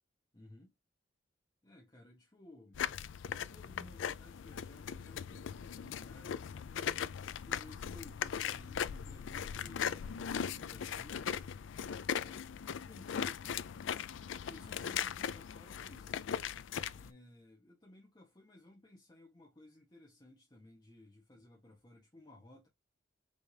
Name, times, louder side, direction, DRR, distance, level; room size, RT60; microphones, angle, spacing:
voice 1, 0.3-0.7 1.6-2.8 3.3-6.9 7.4-11.2 11.8-13.7 14.4-16.2 16.9-22.7, left 1 dB, 25° left, 1.2 m, -57 dB
sound 1, 2.7-17.1, left 8 dB, 80° left, 0.4 m, -39 dB
4.9 x 3.5 x 2.7 m
head